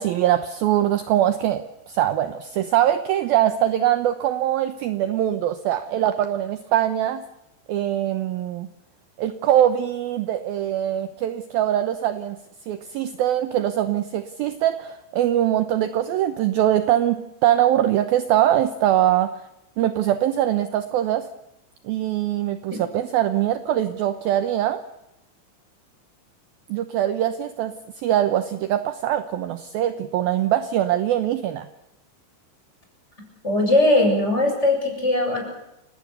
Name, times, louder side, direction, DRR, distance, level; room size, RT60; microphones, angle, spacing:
voice 1, 0.0-7.2 7.7-8.7 9.2-12.4 12.6-19.4 19.8-21.3 21.8-24.8 26.7-31.7, right 12 dB, 80° right, 10 dB, 2.2 m, -22 dB
voice 2, 33.4-35.5, left 2 dB, 15° left, 1 dB, 7.3 m, -20 dB
30.0 x 18.0 x 6.9 m, 0.87 s
omnidirectional pair, 5.5 m